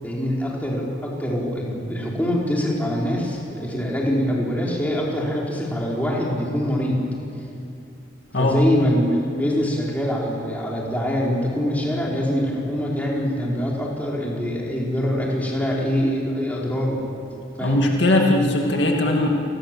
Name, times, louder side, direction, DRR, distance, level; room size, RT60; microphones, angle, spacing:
voice 1, 0.0-7.0 8.4-17.0 17.6-17.8, equal, 10° left, -4 dB, 4.6 m, -24 dB
voice 2, 17.6-19.3, left 1 dB, 60° left, 1 dB, 2.3 m, -19 dB
29.5 x 20.0 x 7.7 m, 2.6 s
head